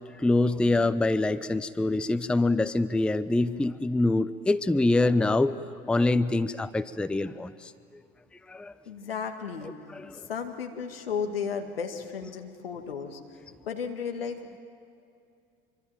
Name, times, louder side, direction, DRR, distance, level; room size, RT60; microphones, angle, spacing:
voice 1, 0.2-7.7 8.5-8.7 9.9-10.2, left 2 dB, 5° left, 15 dB, 0.6 m, -25 dB
voice 2, 8.9-9.7 10.3-13.2 13.7-14.4, left 6 dB, 75° left, 4 dB, 2.0 m, -34 dB
25.5 x 24.0 x 9.0 m, 2.4 s
figure-of-eight pair, 70°, 29 cm